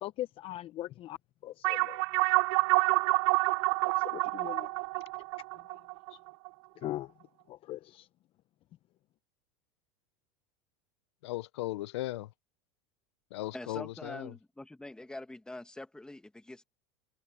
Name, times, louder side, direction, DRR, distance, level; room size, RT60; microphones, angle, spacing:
voice 1, 0.0-1.2 1.4-2.0 3.8-4.7 5.7-5.8 6.1-6.2 6.8-7.1 7.5-8.1, left 14 dB, 40° left, 0.8 m, -40 dB
sound 1, 1.6-6.5, right 27 dB, 65° right, 0.4 m, -28 dB
voice 2, 11.2-12.3 13.3-14.3, left 17 dB, 80° left, 0.8 m, -37 dB
voice 3, 13.5-16.6, left 2 dB, 5° left, 2.3 m, -44 dB
supercardioid pair, 125°, 14 cm